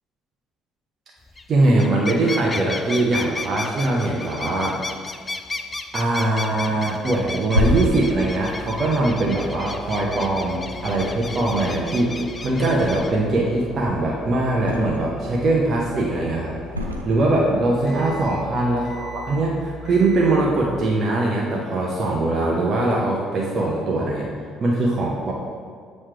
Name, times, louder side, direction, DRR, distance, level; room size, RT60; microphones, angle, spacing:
sound 1, 1.3-1.5 1.7-13.1, left 3 dB, 25° left, 0.4 m, -34 dB
voice 1, 1.5-4.8 5.9-12.2 12.4-16.6 17.0-24.3 24.6-25.3, right 2 dB, 40° right, -3 dB, 0.8 m, -21 dB
Thump thud, 7.1-10.4 10.8-11.6 11.9-13.4 13.7-15.2 15.6-16.1 16.7-17.7 18.0-18.2, equal, 85° right, 0.4 m, -29 dB
sound 2, 7.5-20.7, left 2 dB, 45° left, 1.1 m, -38 dB
7.3 x 3.2 x 4.6 m, 2.1 s
figure-of-eight pair, 50°, 0 cm